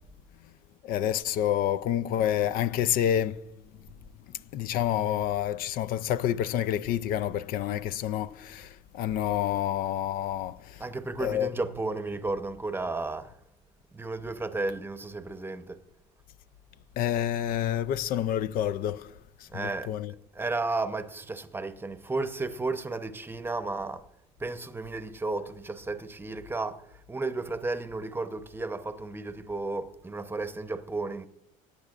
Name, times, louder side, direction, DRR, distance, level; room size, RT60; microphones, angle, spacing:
voice 1, 0.8-3.4 4.5-8.7 8.9-10.8 11.2-11.5 17.0-19.1 19.5-20.1, left 11 dB, 60° left, 0.4 m, -28 dB
voice 2, 10.8-13.3 13.9-15.8 19.5-19.9 20.3-24.1 24.4-31.3, right 3 dB, 15° right, 0.8 m, -33 dB
17.0 x 8.8 x 2.5 m
cardioid pair, 105°, 17 cm